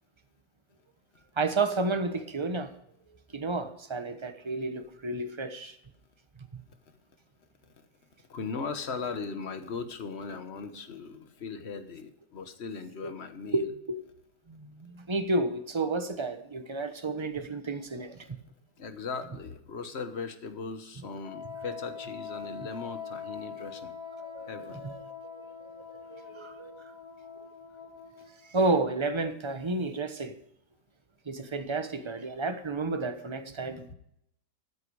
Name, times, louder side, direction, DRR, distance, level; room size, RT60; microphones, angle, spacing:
voice 1, 1.4-2.7 3.3-5.8 6.5-6.6 13.0-13.1 13.5-14.0 14.5-18.3 24.2-25.0 25.7-25.8 26.1-26.7 28.5-30.3 31.3-33.9, right 3 dB, 20° right, 0.7 m, -31 dB
voice 2, 8.3-13.6 18.2-18.4 18.8-23.9 24.5-24.8, left 5 dB, 40° left, 1.2 m, -38 dB
Wind instrument woodwind instrument, 21.2-28.5, left 6 dB, 90° left, 3.0 m, -43 dB
13.5 x 9.6 x 4.8 m
omnidirectional pair, 2.0 m